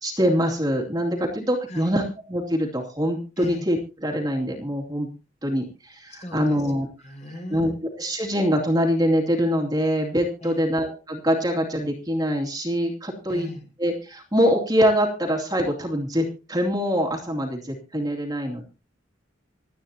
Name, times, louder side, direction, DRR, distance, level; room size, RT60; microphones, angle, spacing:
voice 1, 0.0-5.1 5.4-6.9 7.5-7.7 8.0-13.5 13.8-18.6, equal, 20° right, 1 dB, 2.5 m, -24 dB
voice 2, 6.1-6.6 7.0-7.8 10.4-10.7 13.3-13.7, left 1 dB, 40° left, 3 dB, 5.4 m, -38 dB
26.5 x 9.3 x 2.8 m, 0.32 s
head